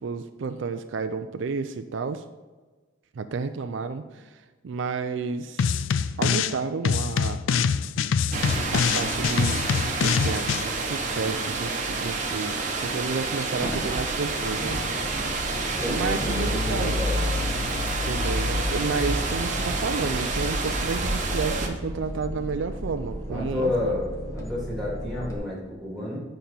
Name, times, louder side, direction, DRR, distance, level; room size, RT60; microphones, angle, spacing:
voice 1, 0.0-2.2 3.2-5.8 6.2-7.4 8.7-9.7 10.0-14.8 15.9-17.0 18.1-24.0, right 4 dB, 70° right, 9 dB, 0.4 m, -31 dB
sound 1, 5.6-6.6 6.8-10.6, left 6 dB, 75° left, 0.3 m, -24 dB
sound 2, 8.3-21.7, right 3 dB, 40° right, 1.0 m, -29 dB
sound 3, 13.6-25.4, left 1 dB, 15° left, 1.3 m, -32 dB
voice 2, 15.6-17.7 23.3-26.2, left 1 dB, ahead, -6 dB, 2.8 m, -31 dB
9.2 x 5.2 x 4.3 m, 1.3 s
head